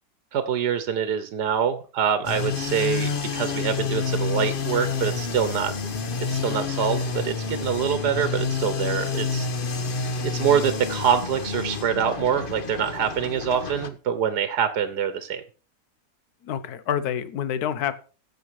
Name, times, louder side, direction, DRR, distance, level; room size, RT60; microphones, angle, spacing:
voice 1, 0.3-5.7 6.3-9.5 10.3-15.4, right 8 dB, 75° right, 10 dB, 1.6 m, -25 dB
sound 1, 2.2-13.9, left 5 dB, 40° left, 1.0 m, -29 dB
voice 2, 16.4-18.0, left 9 dB, 65° left, 13 dB, 1.5 m, -27 dB
15.0 x 8.1 x 4.7 m, 0.38 s
omnidirectional pair, 1.8 m